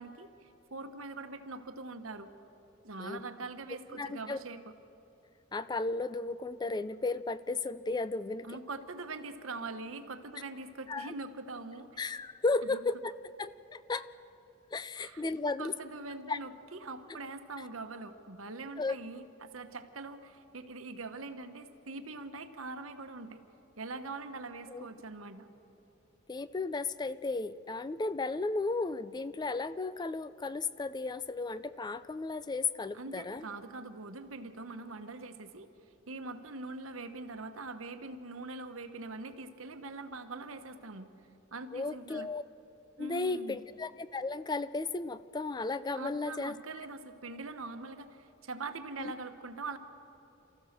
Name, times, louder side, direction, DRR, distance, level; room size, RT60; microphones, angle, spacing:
voice 1, 0.0-2.3 2.8-4.6 8.4-12.0 12.7-12.8 15.0-23.4 23.7-25.5 32.9-35.7 36.1-41.1 41.5-42.3 43.0-43.6 45.9-49.8, right 3 dB, 90° right, 8 dB, 1.2 m, -43 dB
voice 2, 3.9-4.4 5.5-8.6 10.9-11.1 12.0-13.1 13.4-14.1 14.7-15.7 16.3-16.4 17.1-17.2 18.8-19.0 24.7-24.9 26.3-33.5 41.7-42.4 43.0-46.5 49.0-49.1, left 3 dB, 20° left, 15 dB, 0.4 m, -34 dB
27.5 x 14.5 x 6.7 m, 2.9 s
head